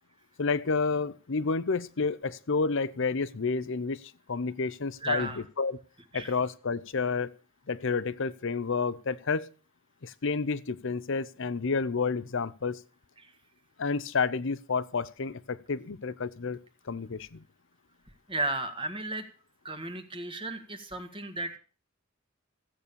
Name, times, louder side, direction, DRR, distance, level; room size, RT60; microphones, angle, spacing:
voice 1, 0.4-4.0 4.3-5.3 5.6-5.8 6.1-7.3 7.7-9.5 10.0-12.8 13.8-16.6 16.9-17.4, left 4 dB, 65° left, 0.7 m, -30 dB
voice 2, 5.0-5.4 6.1-6.4 13.2-13.3 18.3-19.2 19.6-21.6, right 2 dB, 25° right, 1.7 m, -34 dB
15.0 x 8.6 x 6.9 m
head